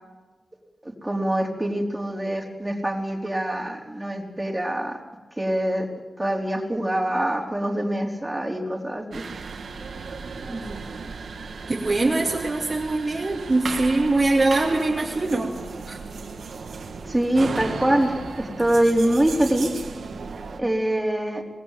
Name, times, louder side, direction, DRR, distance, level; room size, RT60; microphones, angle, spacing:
voice 1, 0.8-5.0 5.4-5.9 6.2-9.2 17.1-19.7 20.6-21.4, right 1 dB, 10° right, 0 dB, 4.2 m, -24 dB
sound 1, 9.1-20.6, right 4 dB, 85° right, 2.2 m, -35 dB
voice 2, 10.5-10.8 11.7-15.5 15.9-16.0, right 2 dB, 35° right, -1 dB, 2.6 m, -23 dB
26.5 x 19.5 x 7.7 m, 1.3 s
wide cardioid pair, 95°, 0 cm